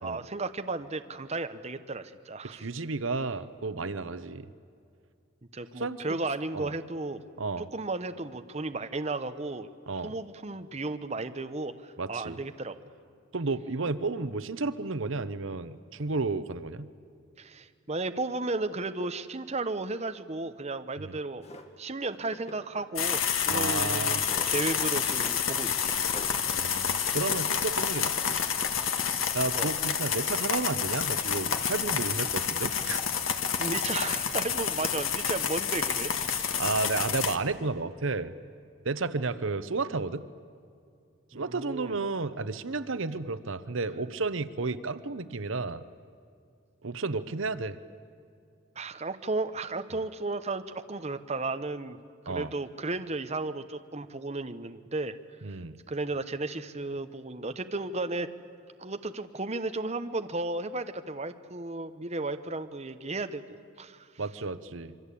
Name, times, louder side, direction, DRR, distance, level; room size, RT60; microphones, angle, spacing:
voice 1, 0.0-2.7 5.5-7.2 7.6-9.7 10.0-12.8 17.4-21.5 21.8-26.0 29.5-29.7 33.2-36.5 41.3-42.0 48.8-52.0 52.2-55.2 55.9-58.3 58.8-63.4 63.8-64.1, right 3 dB, 30° right, 8 dB, 0.9 m, -34 dB
voice 2, 2.4-4.5 5.8-6.2 6.5-6.7 7.4-7.7 9.9-10.1 12.0-12.4 13.3-16.9 21.0-21.2 23.5-24.3 26.5-28.4 29.3-33.0 36.6-38.3 38.8-40.3 41.3-45.8 46.8-47.8 52.3-52.5 55.4-55.8 64.2-64.9, right 3 dB, 70° right, 13 dB, 0.9 m, -32 dB
Drawer open or close, 21.4-21.7 22.3-23.2 23.5-25.0 25.2-25.5 25.8-26.4, left 1 dB, 30° left, 1.9 m, -44 dB
sound 1, 23.0-37.4, left 7 dB, 75° left, 1.7 m, -29 dB
27.0 x 24.0 x 8.5 m, 2.4 s
head